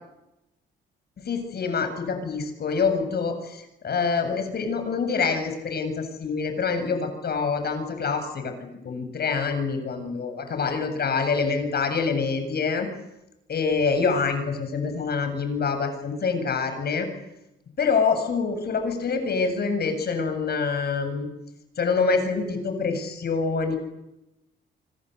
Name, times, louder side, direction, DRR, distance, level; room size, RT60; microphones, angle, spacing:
voice 1, 1.2-12.9 13.5-17.1 17.8-21.3 21.8-23.8, left 5 dB, 55° left, 8 dB, 7.9 m, -26 dB
27.0 x 25.5 x 8.4 m, 0.91 s
cardioid pair, 90°, 20 cm